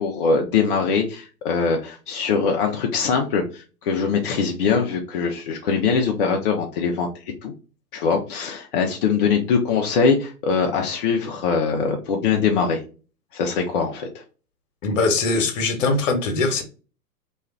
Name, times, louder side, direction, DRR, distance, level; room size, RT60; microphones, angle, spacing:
voice 1, 0.0-7.1 7.4-7.5 7.9-12.8 13.3-14.2, left 5 dB, 40° left, 2 dB, 0.4 m, -22 dB
voice 2, 14.8-16.6, left 3 dB, 55° left, 4 dB, 1.0 m, -21 dB
2.4 x 2.3 x 3.1 m, 0.35 s
figure-of-eight pair, 110°, 46 cm